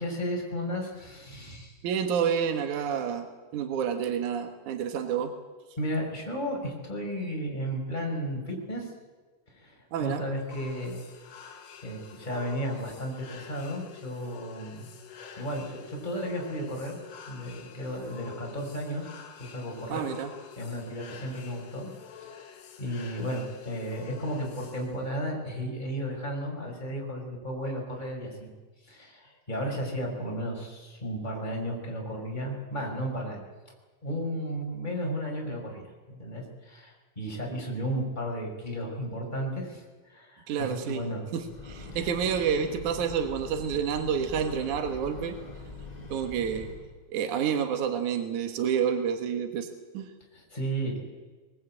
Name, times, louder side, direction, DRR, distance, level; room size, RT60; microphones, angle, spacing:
voice 1, 0.0-1.8 5.8-8.9 9.5-11.0 11.8-14.9 15.4-17.0 17.3-19.1 19.4-20.1 20.6-21.9 22.2-28.5 28.8-33.4 34.0-41.3 41.9-42.1 50.3-51.0, equal, 10° left, -1 dB, 5.1 m, -34 dB
voice 2, 1.8-3.3 3.5-5.3 9.9-10.2 19.9-20.3 40.5-41.0 41.3-45.4 46.1-46.7 47.1-49.7 49.9-50.1, right 7 dB, 70° right, 6 dB, 1.9 m, -29 dB
sound 1, 10.5-25.1, left 7 dB, 60° left, 3.6 m, -48 dB
Breathing / Train, 41.3-47.0, left 3 dB, 30° left, 0.7 m, -43 dB
22.0 x 20.0 x 8.8 m, 1.4 s
omnidirectional pair, 5.8 m